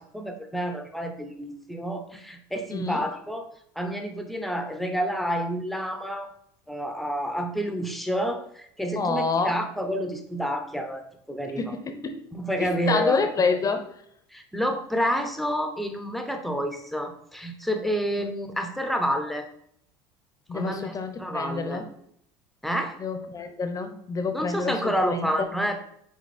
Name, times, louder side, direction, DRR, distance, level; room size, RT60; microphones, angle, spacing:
voice 1, 0.0-3.4 3.8-6.3 6.7-11.0 11.3-11.6 12.3-13.3 14.3-19.5 20.5-21.8 22.6-22.9 24.3-25.8, equal, ahead, 5 dB, 1.0 m, -29 dB
voice 2, 2.7-3.0 9.0-9.6 11.6-12.2 12.6-13.9 20.5-21.9 23.0-25.5, left 4 dB, 30° left, 8 dB, 0.9 m, -28 dB
6.1 x 4.2 x 4.3 m, 0.69 s
supercardioid pair, 95°, 12 cm